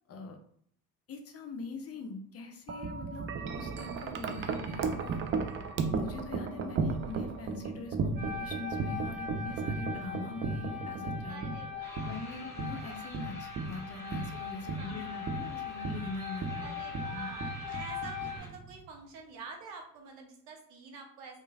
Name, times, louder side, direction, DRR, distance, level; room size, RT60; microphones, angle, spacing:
voice 1, 0.1-0.4 1.1-5.2 5.9-11.6 12.0-16.8 17.1-17.3, left 3 dB, 35° left, 4 dB, 0.5 m, -42 dB
Wind chime, 2.7-18.9, right 4 dB, 30° right, 0.4 m, -36 dB
voice 2, 4.5-5.0 11.3-12.3 12.8-13.0 14.8-15.3 16.6-21.4, right 4 dB, 70° right, 2 dB, 0.8 m, -48 dB
sound 1, 8.2-18.4, left 6 dB, 55° right, 1.4 m, -41 dB
sound 2, 11.8-18.5, left 1 dB, 5° left, 0.8 m, -51 dB
3.0 x 2.4 x 2.4 m, 0.64 s
hypercardioid pair, 60°, 44 cm